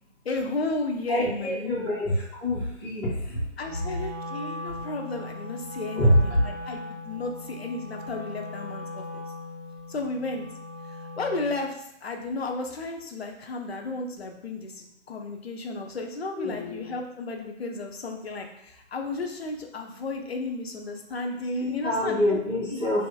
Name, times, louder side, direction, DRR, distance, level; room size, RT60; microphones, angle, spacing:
voice 1, 0.2-1.9 3.6-9.2 9.9-10.4 11.2-11.8 12.0-22.4 22.7-22.8, left 2 dB, 55° left, 3 dB, 0.8 m, -33 dB
voice 2, 1.1-2.1 2.4-3.2 5.9-6.4 16.4-16.8 21.6-23.1, left 1 dB, 10° left, -15 dB, 1.6 m, -25 dB
Wind instrument woodwind instrument, 3.6-11.6, left 1 dB, 25° right, 1.1 m, -39 dB
6.3 x 2.8 x 2.3 m, 0.79 s
figure-of-eight pair, 145°, 38 cm